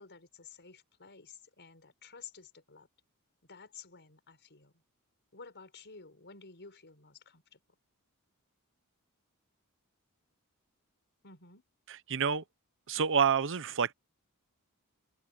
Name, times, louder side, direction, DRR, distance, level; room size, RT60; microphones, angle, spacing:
voice 1, 0.0-2.9 3.5-4.8 5.3-7.6 11.2-11.6, left 5 dB, 55° left, 5.9 m, -52 dB
voice 2, 12.1-12.4 12.9-13.9, right 6 dB, 60° right, 0.8 m, -28 dB
head